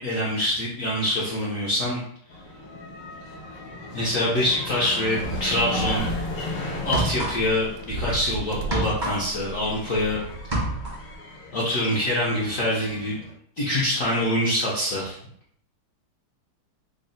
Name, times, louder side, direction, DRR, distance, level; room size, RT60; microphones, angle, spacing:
voice 1, 0.0-2.0 3.9-6.1 6.8-10.2 11.5-13.2 13.6-15.2, left 1 dB, 70° left, -6 dB, 0.7 m, -25 dB
sound 1, 2.3-13.3, left 1 dB, 85° left, 1.7 m, -36 dB
sound 2, 5.2-6.3 7.4-7.5 7.6-8.8 9.7-10.6, right 1 dB, 80° right, 1.4 m, -33 dB
sound 3, 6.8-7.7 8.0-10.1 10.3-11.1, right 2 dB, 45° right, 0.6 m, -28 dB
3.9 x 2.1 x 3.9 m, 0.66 s
omnidirectional pair, 2.4 m